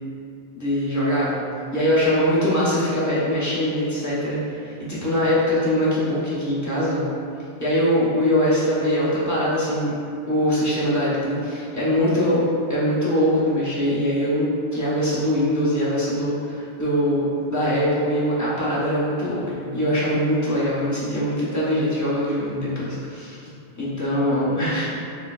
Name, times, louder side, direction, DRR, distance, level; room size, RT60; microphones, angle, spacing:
voice 1, 0.5-1.4 1.7-7.1 7.6-10.0 10.3-12.4 12.7-14.5 14.7-24.9, equal, 20° left, -10 dB, 0.6 m, -22 dB
3.8 x 2.5 x 2.2 m, 2.5 s
omnidirectional pair, 1.2 m